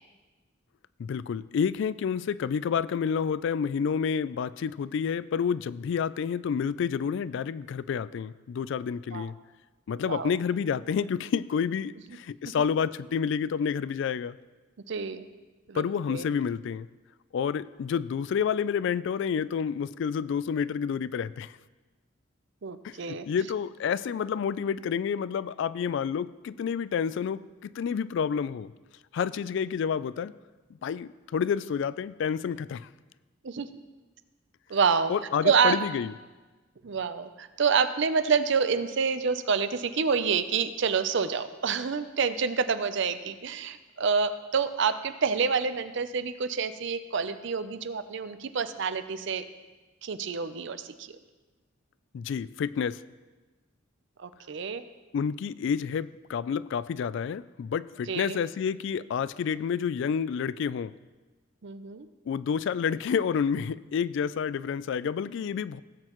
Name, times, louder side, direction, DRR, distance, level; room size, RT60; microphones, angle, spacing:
voice 1, 1.0-9.3 9.9-14.4 15.7-16.9 17.3-21.6 22.8-28.7 29.1-30.3 30.8-32.9 35.1-36.1 52.1-53.0 55.1-60.9 62.3-65.8, left 7 dB, 65° left, 17 dB, 0.3 m, -29 dB
voice 2, 14.9-15.3 15.7-15.8 16.1-16.3 22.6-23.3 33.4-33.7 34.7-35.1 35.4-35.8 36.8-49.4 50.0-51.1 54.2-54.8 58.1-58.4 61.6-62.1, right 5 dB, 65° right, 12 dB, 0.6 m, -27 dB
17.0 x 7.8 x 3.0 m, 1.2 s
head